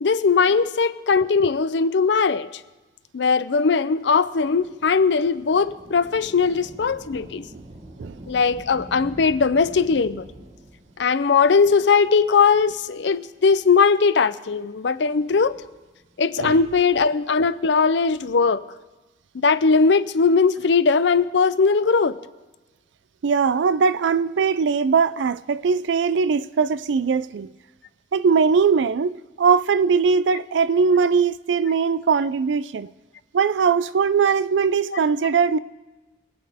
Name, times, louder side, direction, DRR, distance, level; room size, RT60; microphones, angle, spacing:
voice 1, 0.0-2.5 3.1-7.4 8.3-10.3 11.0-15.6 16.2-18.6 19.3-22.2, left 5 dB, 75° left, 0.5 m, -19 dB
Thunder / Rain, 4.2-13.2 13.9-14.0 15.0-16.3 17.8-18.5, right 1 dB, 40° right, 1.2 m, -45 dB
voice 2, 23.2-27.5 28.1-32.9 33.3-35.6, right 5 dB, 85° right, 0.4 m, -20 dB
25.0 x 8.7 x 3.5 m
head